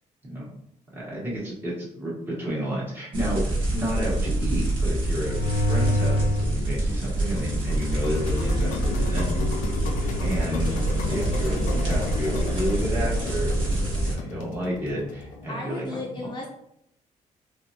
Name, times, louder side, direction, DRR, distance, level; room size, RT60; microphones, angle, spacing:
voice 1, 0.9-9.3 10.2-16.0, equal, 15° right, -6 dB, 1.3 m, -31 dB
sound 1, 3.1-14.1, right 1 dB, 40° right, 1.4 m, -26 dB
sound 2, 5.1-6.5 6.9-15.5, left 2 dB, 75° left, 0.5 m, -30 dB
voice 2, 15.5-16.5, left 2 dB, 35° left, -2 dB, 0.6 m, -34 dB
4.2 x 2.4 x 2.7 m, 0.75 s
cardioid pair, 165°, 13 cm